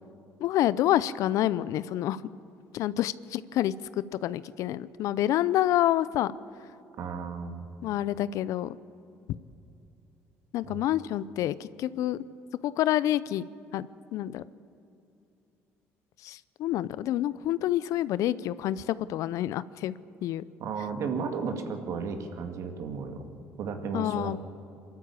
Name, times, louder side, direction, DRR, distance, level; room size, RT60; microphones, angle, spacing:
voice 1, 0.4-2.2 2.7-6.3 7.8-8.8 10.5-12.2 12.6-13.4 13.7-13.9 14.1-14.4 16.2-19.9 20.2-20.4 23.9-24.4, left 13 dB, 65° left, 18 dB, 0.6 m, -28 dB
voice 2, 7.0-7.6 10.6-10.8 20.6-23.2 23.6-24.4, right 5 dB, 60° right, 5 dB, 2.2 m, -34 dB
23.5 x 13.0 x 8.8 m, 2.7 s
supercardioid pair, 75°, 6 cm